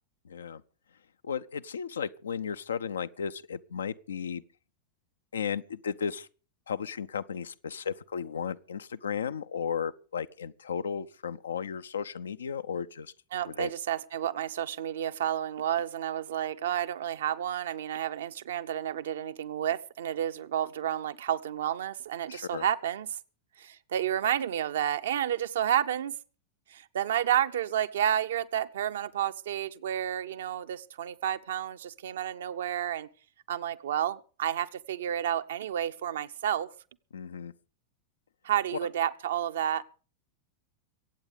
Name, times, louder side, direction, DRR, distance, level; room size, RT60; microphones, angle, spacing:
voice 1, 0.3-0.6 1.2-4.4 5.3-6.3 6.7-13.1 13.5-13.7 22.3-22.6 37.1-37.5 38.7-38.8, left 7 dB, 70° left, 0.6 m, -34 dB
voice 2, 13.3-23.2 23.6-26.1 26.7-33.1 33.5-36.7 38.4-39.8, right 10 dB, 60° right, 0.8 m, -30 dB
23.5 x 8.8 x 5.1 m
figure-of-eight pair, 90°, 0 cm